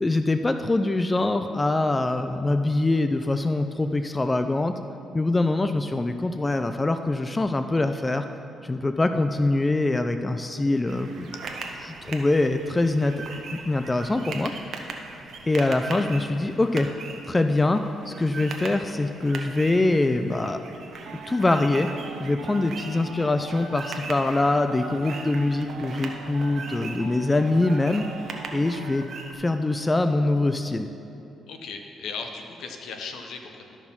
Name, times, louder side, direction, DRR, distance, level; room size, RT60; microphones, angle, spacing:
voice 1, 0.0-4.7 5.1-8.3 8.6-11.3 11.8-13.1 13.7-14.5 15.5-16.9 17.3-20.6 21.3-21.9 22.2-28.0 28.5-29.1 29.3-30.9, left 2 dB, 20° left, 8 dB, 0.4 m, -24 dB
sound 1, 10.9-29.3, right 4 dB, 60° right, 1.0 m, -40 dB
sound 2, 21.0-29.0, right 8 dB, 80° right, 0.4 m, -42 dB
voice 2, 31.5-33.8, left 5 dB, 75° left, 4 dB, 0.9 m, -37 dB
13.0 x 4.9 x 5.4 m, 2.9 s
cardioid pair, 90°, 0 cm